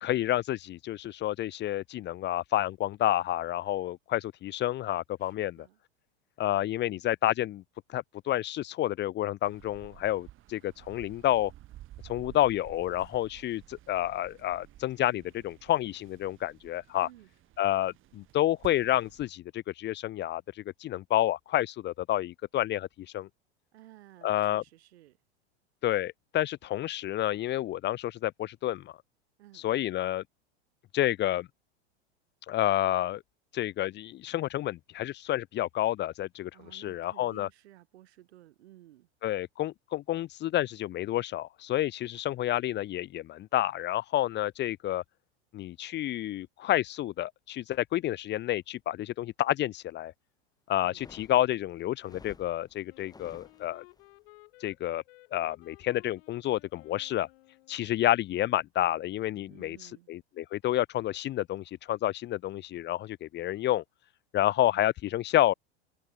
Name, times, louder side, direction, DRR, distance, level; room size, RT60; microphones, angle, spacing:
voice 1, 0.0-5.5 6.4-7.6 7.9-11.5 12.1-17.1 17.6-20.4 20.8-22.9 23.1-23.3 24.2-24.6 25.8-28.9 29.6-30.2 30.9-31.5 32.5-33.2 33.5-37.5 39.2-45.0 45.5-50.1 50.7-53.8 54.6-55.0 55.3-57.3 57.7-59.8 60.1-63.8 64.3-65.5, left 13 dB, 35° left, 0.9 m, -29 dB
voice 2, 5.2-5.8 17.0-17.3 23.7-25.2 29.4-29.7 36.5-39.1 50.8-51.1 59.5-60.1, right 14 dB, 75° right, 6.4 m, -55 dB
sound 1, 9.4-19.3, right 14 dB, 40° right, 2.4 m, -53 dB
sound 2, 50.8-54.0, left 4 dB, 10° left, 2.1 m, -54 dB
Wind instrument woodwind instrument, 52.9-58.0, left 21 dB, 65° left, 5.5 m, -57 dB
hypercardioid pair, 110°, 32 cm